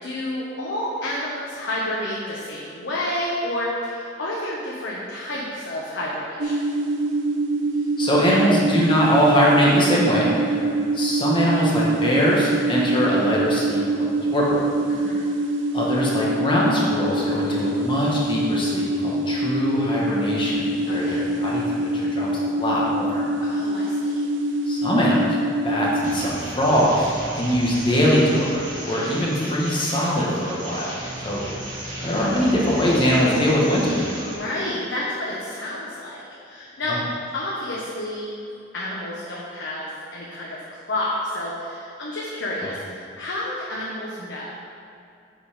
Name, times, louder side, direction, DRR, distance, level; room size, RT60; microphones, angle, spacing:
voice 1, 0.0-6.7 10.5-10.8 14.9-15.3 20.9-21.2 23.4-24.2 34.3-37.0 37.3-38.3 38.7-40.6 40.9-44.5, left 1 dB, 85° left, -6 dB, 1.2 m, -30 dB
sound 1, 6.4-26.2, right 2 dB, 85° right, 0.7 m, -24 dB
voice 2, 8.0-10.3 10.9-14.6 15.7-23.2 24.7-28.5 28.8-30.9 31.2-31.4 32.0-34.0 36.9-37.0, equal, 25° left, -5 dB, 1.3 m, -22 dB
sound 2, 26.0-34.4, right 1 dB, 45° right, 1.9 m, -35 dB
7.3 x 5.5 x 5.0 m, 2.5 s
head